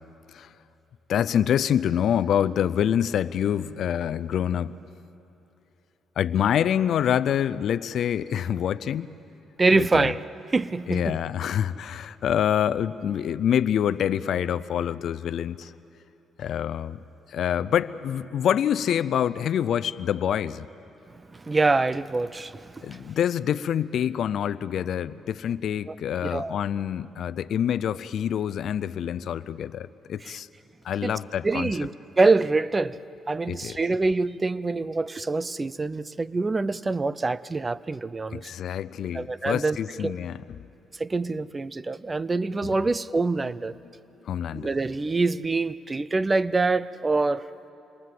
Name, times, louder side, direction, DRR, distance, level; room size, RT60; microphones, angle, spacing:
voice 1, 1.1-4.8 6.2-9.2 9.7-10.1 10.9-15.7 16.4-17.0 17.3-20.7 22.8-30.5 30.8-31.7 33.5-33.8 38.3-40.7 44.3-44.7, left 9 dB, 70° left, 16 dB, 0.6 m, -26 dB
voice 2, 9.6-10.2 10.5-11.2 21.1-23.0 25.9-26.0 26.2-26.6 30.2-30.4 31.0-31.2 31.4-33.0 33.3-38.5 39.1-39.8 40.0-40.2 40.9-43.7 44.5-47.5, right 3 dB, 25° right, 17 dB, 0.6 m, -25 dB
28.0 x 22.5 x 7.8 m, 3.0 s
cardioid pair, 90°, 0 cm